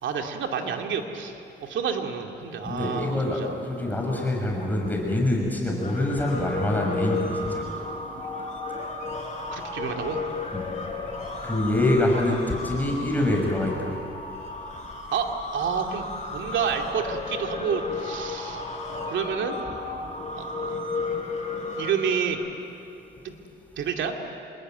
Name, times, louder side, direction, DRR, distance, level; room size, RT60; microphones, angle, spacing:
voice 1, 0.0-3.5 9.5-10.2 15.1-16.1 16.3-18.7 19.1-19.6 20.4-20.8 21.7-22.4 23.2-23.4 23.8-24.1, right 7 dB, 70° right, 3 dB, 2.7 m, -29 dB
voice 2, 2.6-7.6 10.5-10.6 11.4-13.9, left 1 dB, 10° left, -1 dB, 6.3 m, -25 dB
sound 1, 5.8-22.3, left 3 dB, 35° left, 5.5 m, -33 dB
27.0 x 22.0 x 9.3 m, 2.9 s
cardioid pair, 90°, 20 cm